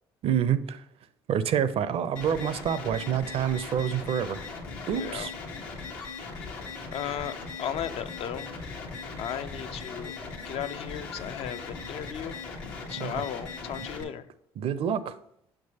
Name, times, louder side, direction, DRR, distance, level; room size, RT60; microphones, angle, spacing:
voice 1, 0.2-0.8 1.3-4.4 4.9-5.3 13.0-13.2 13.8-14.1 14.6-15.2, right 9 dB, 55° right, 15 dB, 0.5 m, -28 dB
sound 1, 2.2-14.0, left 4 dB, 85° left, 1.1 m, -39 dB
voice 2, 4.9-5.3 6.9-8.5 9.2-10.1 10.4-12.4 12.9-14.2, left 9 dB, 60° left, 11 dB, 0.4 m, -35 dB
6.6 x 6.1 x 2.8 m, 0.73 s
hypercardioid pair, 60°, 12 cm